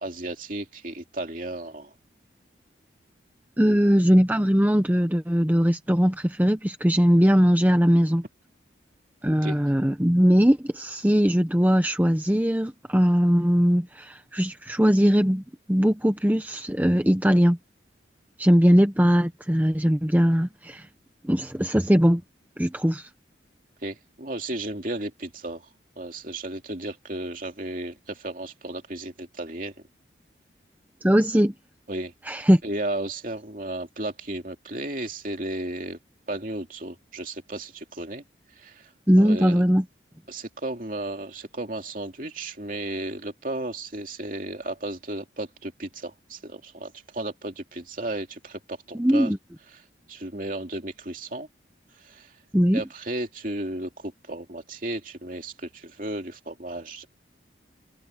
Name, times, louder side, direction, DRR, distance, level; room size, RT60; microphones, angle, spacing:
voice 1, 0.0-1.9 3.6-3.9 9.4-9.6 23.8-25.6 26.0-29.7 31.9-32.1 32.6-36.0 36.3-38.2 38.6-38.9 39.2-39.6 40.3-49.3 50.1-51.5 52.0-52.3 52.7-57.1, right 1 dB, 45° right, 2.8 m, -34 dB
voice 2, 3.6-8.2 9.2-15.4 15.7-17.6 18.4-20.9 21.2-22.2 22.6-23.1 31.0-31.5 32.3-32.6 39.1-39.8 48.9-49.4 52.5-52.8, equal, 10° right, 0.9 m, -20 dB
head